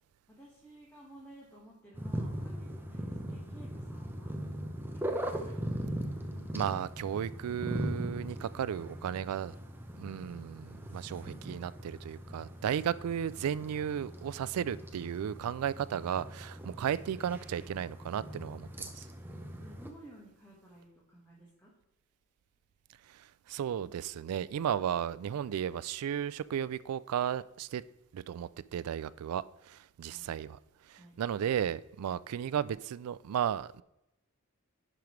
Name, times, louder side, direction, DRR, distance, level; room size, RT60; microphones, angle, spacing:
voice 1, 0.3-4.4 4.9-5.7 14.0-14.7 19.6-21.7 30.0-30.3 30.9-31.2, right 1 dB, 10° left, 1.5 m, -55 dB
sound 1, 1.9-19.9, right 1 dB, 10° right, 0.7 m, -40 dB
voice 2, 6.5-9.5 10.0-19.1 23.1-27.8 28.1-30.6 30.8-33.8, right 9 dB, 70° right, 0.3 m, -34 dB
10.5 x 5.1 x 3.1 m
head